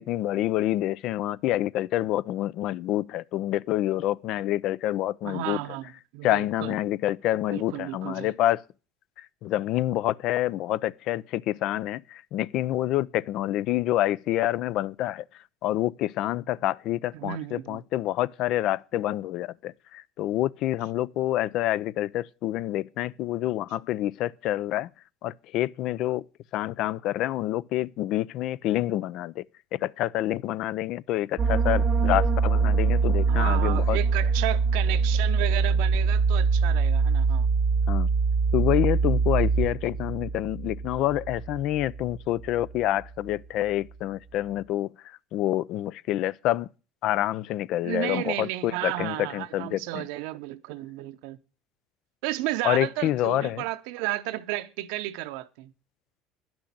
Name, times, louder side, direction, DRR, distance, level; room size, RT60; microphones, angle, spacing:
voice 1, 0.0-5.6 6.2-8.6 9.2-15.2 15.6-24.9 25.2-26.2 26.5-29.4 29.7-34.0 37.9-38.1 38.5-46.7 47.0-50.0 52.6-53.6, left 14 dB, 65° left, 0.5 m, -27 dB
voice 2, 5.2-6.8 7.5-8.3 17.1-17.8 33.3-37.5 47.8-51.4 52.2-55.7, right 16 dB, 75° right, 0.7 m, -33 dB
sound 1, 31.4-42.8 43.0-43.3, right 5 dB, 40° right, 0.7 m, -24 dB
10.5 x 6.2 x 8.5 m
supercardioid pair, 90°, 0 cm